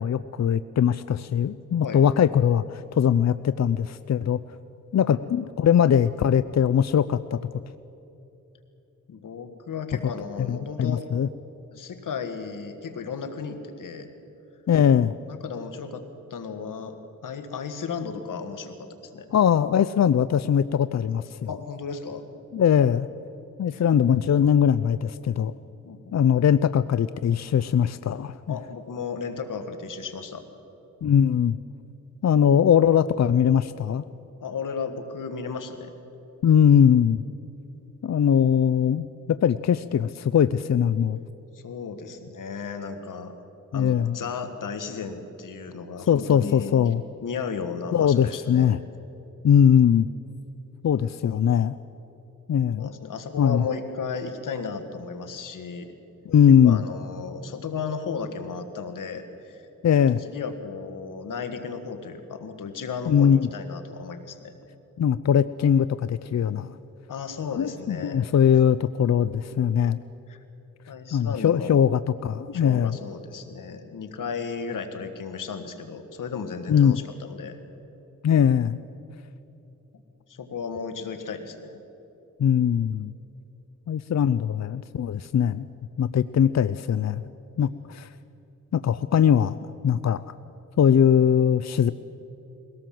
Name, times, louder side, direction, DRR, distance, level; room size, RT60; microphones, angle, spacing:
voice 1, 0.0-4.4 4.9-7.4 10.4-11.3 14.7-15.1 19.3-21.5 22.5-23.1 23.6-25.5 26.1-28.6 31.0-31.6 32.2-34.0 36.4-37.2 38.0-41.2 43.7-44.2 46.1-47.0 47.9-48.8 49.4-50.1 50.8-51.7 52.5-52.9 53.4-53.6 56.3-56.8 59.8-60.2 63.1-63.5 65.0-66.8 67.6-70.0 71.1-73.0 76.7-77.0 78.2-78.8 82.4-83.1 83.9-85.7 86.0-87.2 87.6-88.1 88.7-89.6 89.8-90.2 90.8-91.9, left 8 dB, 60° left, 14 dB, 0.6 m, -21 dB
voice 2, 9.1-11.1 11.7-14.1 15.3-16.0 16.3-17.0 17.2-19.3 21.5-22.2 23.7-23.8 25.8-26.2 28.5-30.5 34.4-35.9 41.5-43.4 43.7-46.7 47.2-48.7 52.8-55.9 56.5-59.7 60.2-64.5 67.1-68.2 70.3-70.4 70.9-71.9 72.5-77.6 80.3-81.8, left 5 dB, 90° left, 8 dB, 1.8 m, -34 dB
22.5 x 17.5 x 7.7 m, 3.0 s
cardioid pair, 60°, 31 cm